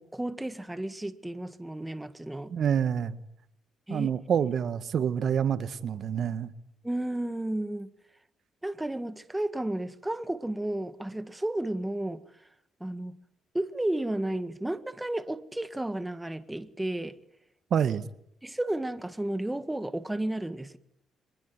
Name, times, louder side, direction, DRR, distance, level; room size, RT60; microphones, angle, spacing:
voice 1, 0.0-2.5 3.9-4.1 6.8-7.9 8.6-12.2 12.8-13.1 13.5-17.2 18.4-20.8, right 1 dB, 10° right, 1.7 m, -32 dB
voice 2, 2.5-3.2 3.9-6.5 17.7-18.0, right 8 dB, 60° right, 1.6 m, -27 dB
24.5 x 20.5 x 9.7 m
cardioid pair, 90°, 0 cm